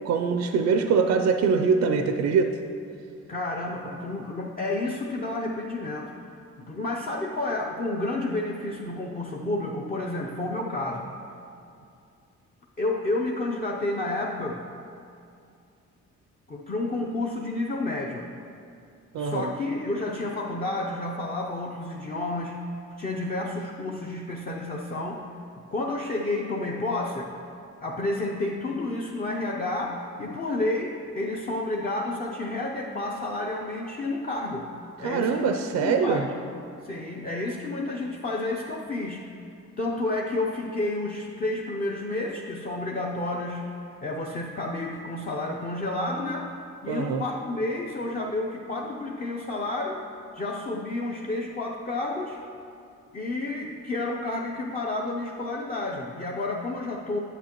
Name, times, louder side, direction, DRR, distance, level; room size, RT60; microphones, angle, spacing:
voice 1, 0.0-2.5 19.1-19.5 35.0-36.2 46.9-47.2, right 5 dB, 60° right, 6 dB, 0.5 m, -23 dB
voice 2, 3.3-6.1 6.6-11.1 12.8-14.6 16.5-18.3 19.2-22.6 23.0-25.3 25.7-27.3 27.8-34.7 35.0-36.4 36.8-39.3 39.8-43.7 44.0-46.6 46.8-50.0 50.3-52.4 53.1-57.2, left 2 dB, 30° left, -2 dB, 0.6 m, -30 dB
8.3 x 8.0 x 3.0 m, 2.5 s
cardioid pair, 90°, 30 cm